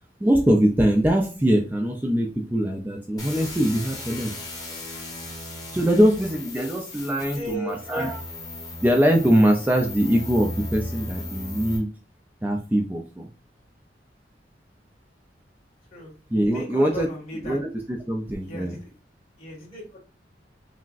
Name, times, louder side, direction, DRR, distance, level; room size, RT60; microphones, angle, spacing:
voice 1, 0.2-4.3 5.7-8.2 8.8-11.9 12.4-13.3 16.3-17.1 17.4-18.8, equal, 10° right, 2 dB, 0.4 m, -22 dB
sound 1, 3.2-11.8, left 2 dB, 20° left, 1.1 m, -36 dB
voice 2, 7.2-8.1 15.9-16.1 16.4-17.6 18.4-18.9 19.4-20.0, right 1 dB, 40° left, -3 dB, 1.6 m, -37 dB
5.8 x 2.1 x 2.5 m, 0.34 s
head